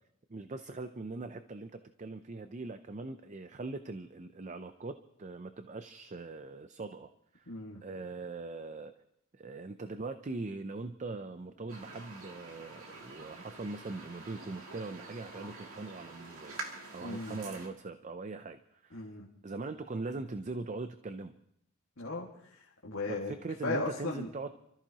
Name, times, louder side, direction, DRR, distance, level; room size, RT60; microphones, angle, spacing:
voice 1, 0.3-1.7 2.0-7.1 7.3-7.5 7.8-8.9 9.3-19.0 19.4-21.3 23.1-24.5, right 3 dB, 35° right, 10 dB, 0.5 m, -41 dB
voice 2, 7.5-7.8 17.0-17.4 18.9-19.3 22.0-23.3 23.6-24.3, left 3 dB, 70° left, -3 dB, 1.9 m, -37 dB
sound 1, 11.7-17.7, right 3 dB, 70° right, 2.5 m, -47 dB
28.5 x 14.0 x 2.9 m, 0.74 s
head